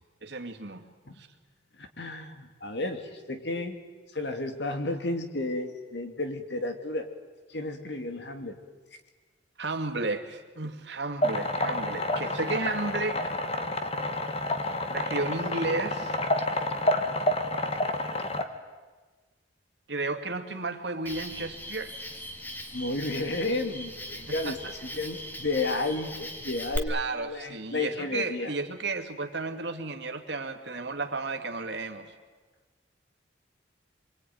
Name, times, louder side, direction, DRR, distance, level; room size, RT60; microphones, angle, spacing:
voice 1, 0.2-0.8 1.2-1.3 9.6-13.3 14.9-16.2 19.9-22.0 24.3-24.6 26.9-32.1, right 3 dB, 70° right, 5 dB, 2.5 m, -33 dB
voice 2, 1.8-3.8 4.1-7.1 7.5-8.6 22.7-28.5, left 2 dB, 65° left, 6 dB, 2.7 m, -32 dB
sound 1, 11.2-18.4, left 1 dB, 30° left, 1.7 m, -29 dB
Cricket, 21.1-26.8, equal, 10° left, 1.8 m, -39 dB
27.0 x 23.0 x 9.5 m, 1.3 s
head